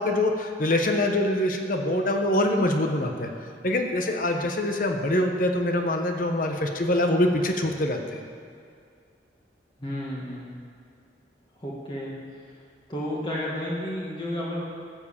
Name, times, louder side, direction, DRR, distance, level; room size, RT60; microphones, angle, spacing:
voice 1, 0.0-3.3 3.6-8.2, left 1 dB, 50° left, 4 dB, 1.0 m, -24 dB
voice 2, 9.8-10.6 11.6-12.2 12.9-14.6, left 1 dB, 25° left, -5 dB, 1.8 m, -32 dB
14.5 x 7.4 x 7.1 m, 2.3 s
head